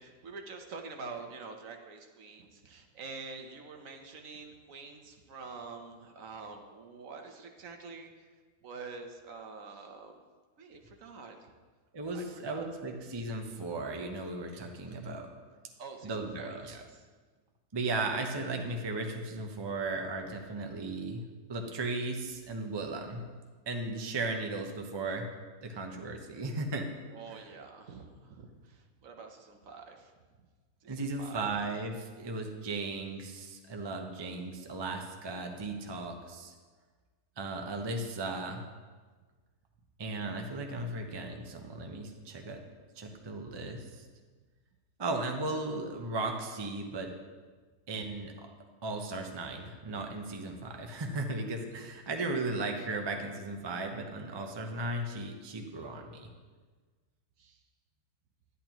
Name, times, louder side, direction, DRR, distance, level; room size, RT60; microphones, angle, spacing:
voice 1, 0.0-8.3 8.6-10.2 10.6-11.5 12.1-12.7 15.8-17.1 27.1-30.1 30.8-31.5 57.4-57.6, right 4 dB, 65° right, 4 dB, 1.2 m, -46 dB
voice 2, 11.9-15.3 16.0-16.8 17.7-21.2 21.5-23.2 23.7-25.3 25.6-26.9 27.3-27.4 30.9-36.5 37.4-38.6 40.0-42.6 43.0-44.1 45.0-47.1 47.9-48.5 48.8-56.3, right 2 dB, 25° right, 3 dB, 0.5 m, -36 dB
11.0 x 10.5 x 3.0 m, 1.4 s
omnidirectional pair, 1.6 m